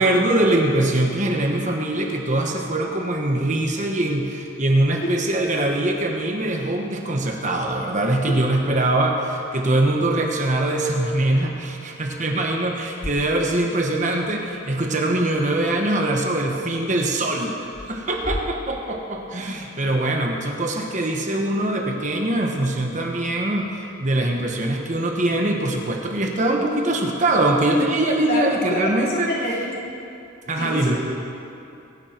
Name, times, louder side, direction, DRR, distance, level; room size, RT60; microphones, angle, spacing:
voice 1, 0.0-29.3 30.5-31.0, right 1 dB, 35° right, 1 dB, 1.3 m, -22 dB
sound 1, 13.0-14.0 14.3-14.4 17.6-19.7, left 1 dB, 15° left, 0.6 m, -36 dB
voice 2, 28.2-29.7 30.6-31.0, left 1 dB, 50° left, -5 dB, 3.8 m, -26 dB
22.5 x 11.0 x 4.5 m, 2.7 s
head